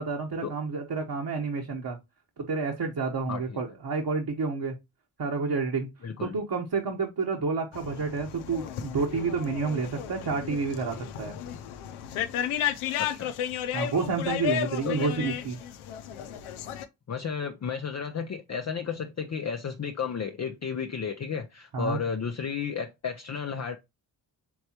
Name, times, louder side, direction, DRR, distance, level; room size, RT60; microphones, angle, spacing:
voice 1, 0.0-2.0 2.4-4.7 5.2-5.9 6.2-11.4 13.7-15.6 21.7-22.0, right 4 dB, 50° right, 1.2 m, -29 dB
voice 2, 6.0-6.3 13.0-13.3 14.8-15.1 17.1-23.8, left 6 dB, 35° left, 0.6 m, -33 dB
sound 1, 7.7-16.9, left 10 dB, 85° left, 0.6 m, -33 dB
4.4 x 3.3 x 2.8 m
supercardioid pair, 45°, 49 cm